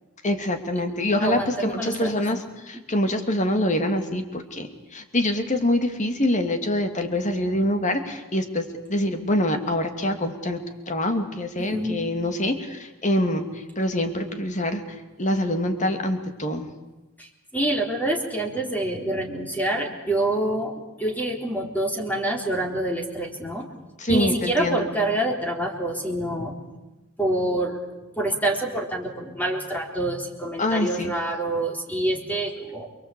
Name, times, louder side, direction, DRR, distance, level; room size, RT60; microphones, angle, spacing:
voice 1, 0.2-10.6 10.9-13.4 13.8-14.8 15.2-16.7 24.0-24.9 30.6-31.1, left 1 dB, 35° left, 7 dB, 2.7 m, -25 dB
voice 2, 1.2-2.1 2.7-2.8 11.6-12.0 17.2-20.7 21.0-23.7 24.1-26.6 27.2-27.9 28.2-32.9, right 1 dB, 10° left, 2 dB, 3.7 m, -26 dB
28.5 x 22.5 x 8.5 m, 1.1 s
head